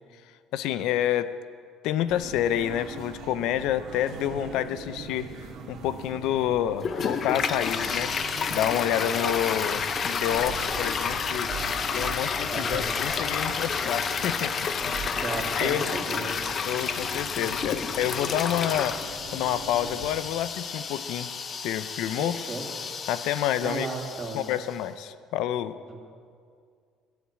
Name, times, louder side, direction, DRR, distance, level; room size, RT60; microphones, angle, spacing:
voice 1, 0.5-1.3 1.8-5.3 5.7-8.1 8.5-11.5 11.9-14.5 14.8-14.9 15.5-15.8 16.6-21.3 21.6-22.4 23.1-23.9 24.3-25.7, left 11 dB, 75° left, 13 dB, 0.6 m, -28 dB
sound 1, 2.1-20.1, right 5 dB, 60° right, 2.0 m, -41 dB
Toilet flush, 6.8-24.7, left 6 dB, 40° left, 0.8 m, -30 dB
voice 2, 12.5-12.9 15.1-16.4 22.1-22.7 23.6-24.5 25.9-26.0, right 3 dB, 30° right, 1 dB, 2.6 m, -34 dB
20.5 x 7.3 x 8.8 m, 2.2 s
cardioid pair, 125°, 0 cm